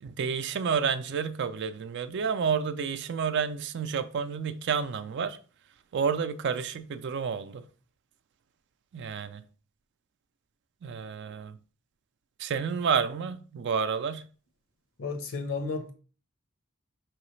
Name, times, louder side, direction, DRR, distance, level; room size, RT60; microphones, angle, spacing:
voice 1, 0.0-5.4 5.9-7.6 8.9-9.4 10.8-11.6 12.4-14.2, right 6 dB, 55° right, 0.4 m, -30 dB
voice 2, 15.0-15.9, left 4 dB, 70° left, 0.9 m, -32 dB
4.8 x 3.1 x 3.1 m
head